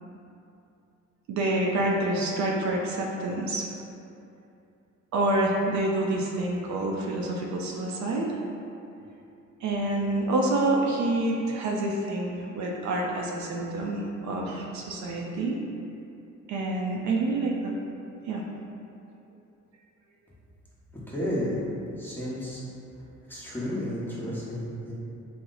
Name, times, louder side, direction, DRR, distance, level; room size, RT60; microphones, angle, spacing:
voice 1, 1.3-3.7 5.1-8.4 9.6-15.6 16.5-17.7 18.3-18.4, right 2 dB, 70° right, -1 dB, 0.5 m, -27 dB
voice 2, 21.1-21.5 22.0-22.6 23.3-24.9, equal, 5° left, -8 dB, 0.8 m, -32 dB
2.9 x 2.0 x 3.7 m, 2.7 s
cardioid pair, 90°, 30 cm